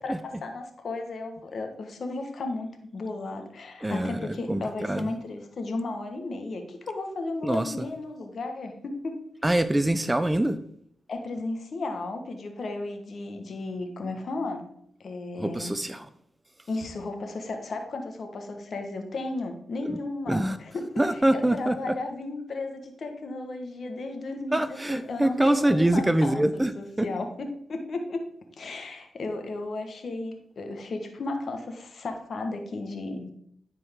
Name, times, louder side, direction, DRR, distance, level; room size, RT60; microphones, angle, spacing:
voice 1, 0.0-9.2 11.1-14.7 15.0-15.7 16.7-28.2 28.6-33.3, left 2 dB, 65° left, 5 dB, 1.4 m, -34 dB
voice 2, 3.8-5.1 7.4-7.7 9.4-10.6 15.4-16.1 19.9-20.0 20.3-20.6 21.0-21.9 24.5-26.7 27.0-27.1, right 1 dB, 15° right, 11 dB, 0.5 m, -24 dB
11.0 x 4.6 x 3.7 m, 0.69 s
cardioid pair, 50°, 0 cm